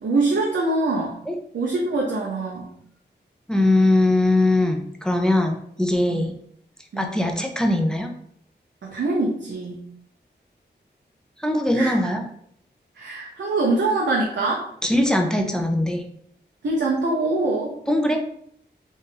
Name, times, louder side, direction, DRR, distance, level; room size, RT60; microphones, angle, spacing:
voice 1, 0.0-1.1 1.5-2.7 6.1-6.3 6.9-7.1 8.8-9.8 11.7-11.9 13.0-14.6 16.6-17.7, right 2 dB, 85° right, -3 dB, 0.8 m, -24 dB
voice 2, 3.5-6.3 7.0-8.1 11.4-12.2 14.8-16.0 17.9-18.2, left 1 dB, 5° left, 3 dB, 0.5 m, -21 dB
4.1 x 2.5 x 3.8 m, 0.68 s
wide cardioid pair, 125°, 18 cm